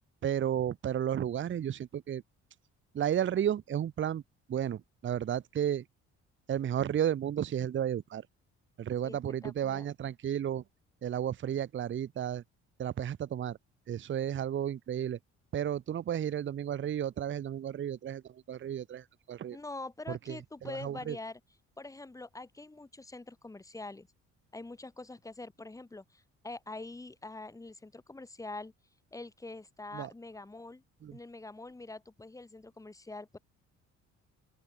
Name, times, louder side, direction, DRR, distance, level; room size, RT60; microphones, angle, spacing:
voice 1, 0.2-2.2 2.9-4.2 4.5-5.8 6.5-8.3 8.8-10.6 11.0-12.4 12.8-13.6 13.9-15.2 15.5-19.6 20.1-21.2 29.9-30.1 31.0-31.2, right 10 dB, 40° right, 0.8 m, -33 dB
voice 2, 9.0-9.9 19.5-21.4 21.8-24.1 24.5-28.7 29.1-30.8 31.1-33.4, left 2 dB, 10° left, 0.9 m, -44 dB
open air
cardioid pair, 90°, 29 cm